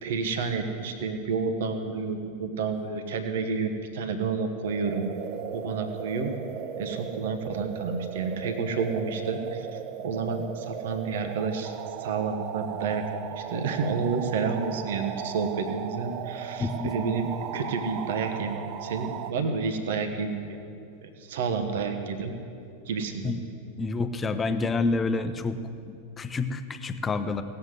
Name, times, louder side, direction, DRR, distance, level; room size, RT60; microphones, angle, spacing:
voice 1, 0.0-5.0 5.5-6.3 6.8-11.7 12.0-20.6 21.0-22.3 22.9-23.3, right 4 dB, 55° right, 6 dB, 1.2 m, -30 dB
sound 1, 4.6-19.3, right 10 dB, 40° right, 0.7 m, -37 dB
voice 2, 16.6-16.9 23.2-23.4 23.8-25.6 25.8-27.4, left 3 dB, 20° left, 10 dB, 0.8 m, -28 dB
17.5 x 7.9 x 8.0 m, 2.5 s
figure-of-eight pair, 90°, 0 cm